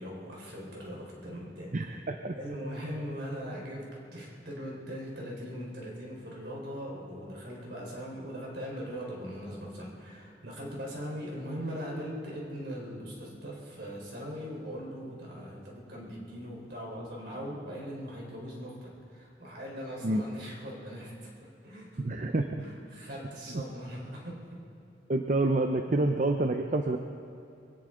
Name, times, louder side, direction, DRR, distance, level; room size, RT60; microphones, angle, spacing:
voice 1, 0.0-1.7 2.3-21.3 21.6-22.0 22.6-24.6 25.9-26.0, equal, 60° right, -2 dB, 4.1 m, -40 dB
voice 2, 1.7-2.3 20.0-20.2 22.0-22.6 25.1-27.0, right 2 dB, 40° right, 6 dB, 0.6 m, -28 dB
23.0 x 16.5 x 3.8 m, 2.7 s
head